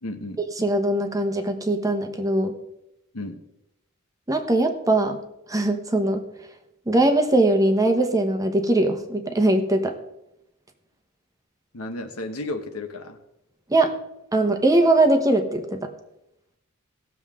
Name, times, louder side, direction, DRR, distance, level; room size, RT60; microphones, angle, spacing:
voice 1, 0.0-0.4 3.1-3.4 11.7-13.2, left 2 dB, 80° left, 6 dB, 1.1 m, -33 dB
voice 2, 0.6-2.5 4.3-5.2 5.5-6.2 6.9-9.9 13.7-13.9 14.3-15.9, right 2 dB, 15° right, 6 dB, 1.0 m, -21 dB
17.5 x 7.1 x 3.6 m, 0.86 s
head